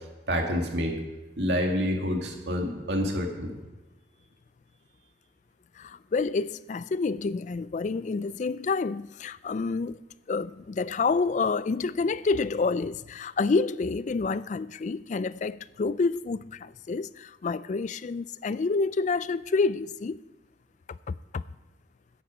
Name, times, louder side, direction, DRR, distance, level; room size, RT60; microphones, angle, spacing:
voice 1, 0.3-1.0 1.4-3.6, equal, 65° right, 2.2 m, -28 dB
voice 2, 5.8-10.0 10.3-20.2 20.9-21.4, left 4 dB, 40° left, 0.3 m, -28 dB
14.0 x 10.5 x 5.0 m
head